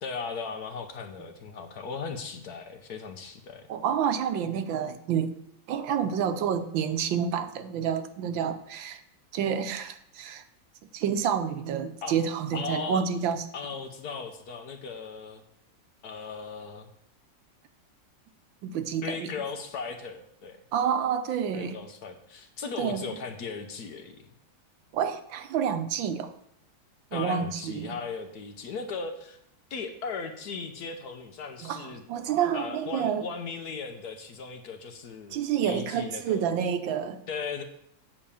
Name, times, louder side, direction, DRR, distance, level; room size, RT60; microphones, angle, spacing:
voice 1, 0.0-3.7 12.0-12.2 12.5-13.0 13.5-15.4 16.0-16.9 19.0-20.6 21.5-24.3 27.1-29.4 29.7-32.0 32.5-36.5 37.3-37.6, left 5 dB, 60° left, 6 dB, 1.3 m, -37 dB
voice 2, 3.7-5.3 5.7-9.0 9.3-10.4 10.9-13.4 18.6-19.4 20.7-21.8 22.8-23.0 24.9-26.3 27.1-27.9 31.6-33.2 35.3-37.2, right 8 dB, 80° right, 9 dB, 1.5 m, -29 dB
8.6 x 5.2 x 7.0 m, 0.71 s
omnidirectional pair, 2.1 m